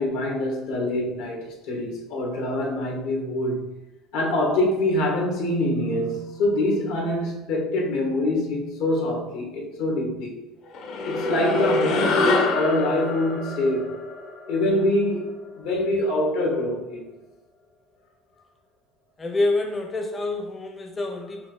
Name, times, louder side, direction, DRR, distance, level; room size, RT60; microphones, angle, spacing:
voice 1, 0.0-3.6 4.1-10.3 11.0-14.0 14.5-17.0, left 1 dB, 80° left, 0 dB, 1.3 m, -25 dB
sound 1, 10.7-15.4, left 2 dB, 65° left, 0.9 m, -26 dB
voice 2, 19.2-21.5, left 2 dB, 25° left, 3 dB, 0.5 m, -27 dB
5.6 x 2.3 x 3.8 m, 1.0 s
supercardioid pair, 95°, 0 cm